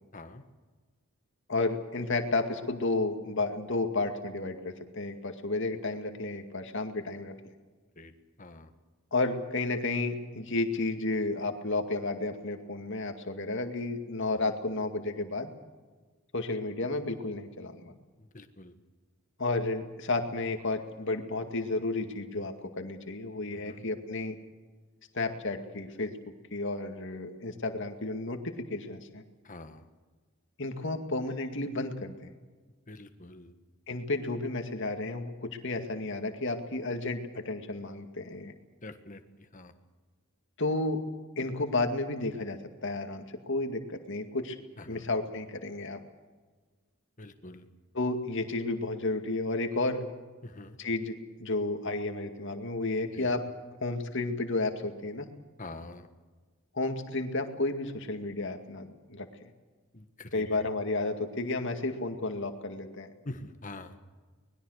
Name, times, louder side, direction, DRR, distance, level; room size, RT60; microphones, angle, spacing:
voice 1, 0.1-0.4 8.0-8.1 8.4-8.7 14.4-14.5 18.2-18.7 23.5-23.8 29.4-29.8 32.9-33.5 38.8-39.7 44.8-45.0 47.2-47.7 50.4-50.8 53.1-53.3 55.6-56.1 59.9-60.6 63.2-63.9, left 2 dB, 35° left, 8 dB, 1.5 m, -45 dB
voice 2, 1.5-7.3 9.1-15.5 16.3-17.9 19.4-24.3 25.1-26.1 26.5-29.2 30.6-32.3 33.9-38.5 40.6-41.0 41.4-44.6 44.9-46.0 47.9-50.0 50.8-53.4 53.8-55.3 56.7-59.3 60.3-63.1, left 2 dB, 55° left, 6 dB, 2.2 m, -32 dB
24.5 x 20.5 x 6.5 m, 1.4 s
head